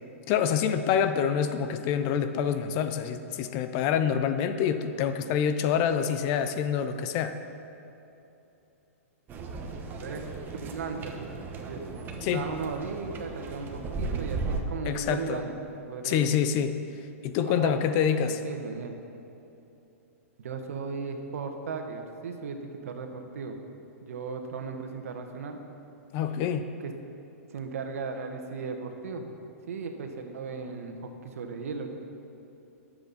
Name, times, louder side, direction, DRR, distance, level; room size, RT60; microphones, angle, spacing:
voice 1, 0.3-7.4 12.2-12.5 14.8-15.4 16.0-16.8 17.2-18.4 26.1-26.7, left 8 dB, 40° left, 10 dB, 0.7 m, -26 dB
sound 1, 9.3-14.6, right 3 dB, 25° right, 1.3 m, -36 dB
voice 2, 10.5-11.3 11.6-11.8 12.3-15.5 15.8-16.4 17.4-19.0 20.4-23.6 24.0-25.6 26.8-26.9 27.5-29.3 29.7-31.9, right 5 dB, 70° right, 5 dB, 1.4 m, -36 dB
21.0 x 7.8 x 4.2 m, 2.9 s
hypercardioid pair, 125°, 8 cm